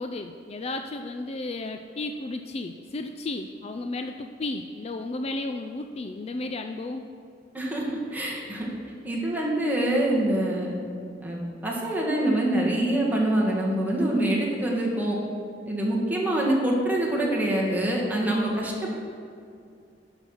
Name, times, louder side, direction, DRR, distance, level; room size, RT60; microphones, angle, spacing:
voice 1, 0.0-7.1 18.6-18.7, left 2 dB, 35° left, 6 dB, 0.4 m, -33 dB
voice 2, 7.5-8.7 9.0-10.8 11.2-15.2 15.7-18.9, right 1 dB, 10° right, -3 dB, 1.7 m, -25 dB
11.5 x 6.0 x 5.6 m, 2.4 s
head